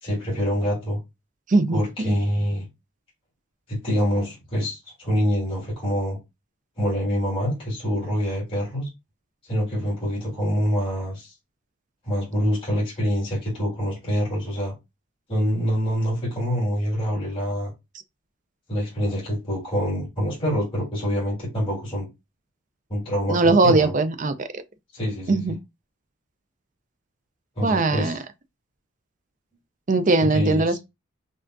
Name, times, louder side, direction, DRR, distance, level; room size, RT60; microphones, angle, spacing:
voice 1, 0.0-1.0 1.7-2.7 3.7-6.2 6.8-8.9 9.5-11.3 12.0-14.7 15.3-17.7 18.7-22.1 22.9-23.9 24.9-25.4 27.6-28.2 30.3-30.8, equal, 25° left, 2.3 m, -25 dB
voice 2, 1.5-2.1 23.3-24.6 25.3-25.6 27.6-28.2 29.9-30.8, right 3 dB, 35° right, 0.4 m, -20 dB
5.6 x 2.4 x 2.5 m
head